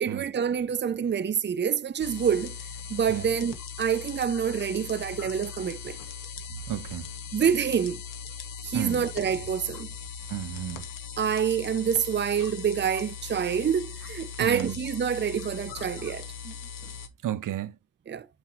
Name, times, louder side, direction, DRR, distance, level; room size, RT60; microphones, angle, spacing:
voice 1, 0.0-2.5 2.9-6.0 7.3-8.0 8.6-9.9 11.2-16.5 18.1-18.3, right 7 dB, 35° right, 0.6 m, -27 dB
sound 1, 2.0-17.1, left 6 dB, 75° left, 1.3 m, -40 dB
voice 2, 6.7-7.1 8.7-9.1 10.3-10.9 14.4-14.8 17.2-17.8, right 11 dB, 70° right, 0.7 m, -32 dB
7.8 x 2.9 x 4.4 m
cardioid pair, 75°, 33 cm